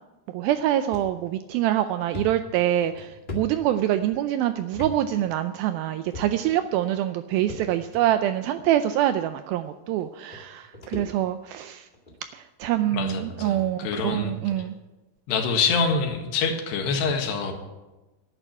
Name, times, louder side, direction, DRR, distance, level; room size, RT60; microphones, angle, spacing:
voice 1, 0.3-11.9 12.3-14.7, right 12 dB, 85° right, 10 dB, 2.1 m, -25 dB
sound 1, 0.9-1.1 1.5-1.6 2.1-4.2 4.7-4.9 5.2-5.4 6.1-6.6 7.5-8.0 8.9-9.0 10.0-10.1 10.3-11.5 11.9-12.2 13.0-13.1 13.6-13.7 13.9-14.1 14.5-14.7, left 2 dB, 70° left, 0.4 m, -39 dB
voice 2, 12.9-14.4 15.3-17.5, left 5 dB, 85° left, 4 dB, 3.8 m, -26 dB
11.0 x 9.1 x 9.9 m, 1.1 s
omnidirectional pair, 4.7 m